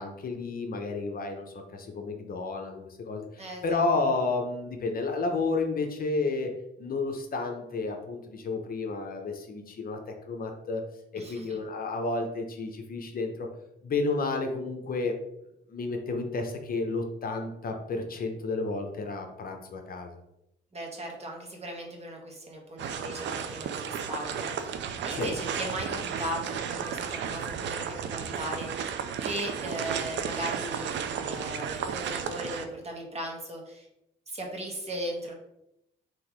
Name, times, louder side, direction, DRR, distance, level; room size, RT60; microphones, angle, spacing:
voice 1, 0.0-1.5 1.7-6.5 6.8-10.0 10.3-10.8 11.1-13.5 13.8-15.1 15.7-20.2 25.1-25.3, left 3 dB, 45° left, 4 dB, 0.8 m, -31 dB
voice 2, 3.4-3.8 11.2-11.6 20.7-33.9 34.3-35.3, right 1 dB, 30° right, 1 dB, 1.4 m, -38 dB
sound 1, 22.8-32.7, right 7 dB, 70° right, 0.5 m, -33 dB
3.9 x 2.9 x 4.6 m, 0.83 s
cardioid pair, 90°, 20 cm